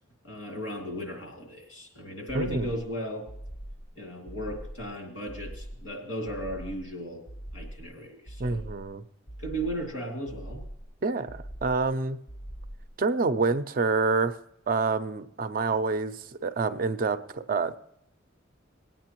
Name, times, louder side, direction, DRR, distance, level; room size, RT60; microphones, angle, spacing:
voice 1, 0.2-3.3 3.9-7.2 7.5-8.7 9.4-10.6, equal, 80° left, 0 dB, 2.8 m, -36 dB
voice 2, 2.3-2.7 8.4-9.0 11.0-12.2 13.0-14.4 14.7-17.8, right 4 dB, 45° right, 11 dB, 0.5 m, -27 dB
sound 1, 3.3-3.9 4.3-4.9 5.3-5.9 6.3-6.9 7.3-7.9 8.3-8.9 9.3-9.9 10.3-10.9 11.3-11.9 12.3-12.9, right 1 dB, 45° left, 0.7 m, -42 dB
19.5 x 9.0 x 3.0 m, 0.76 s
head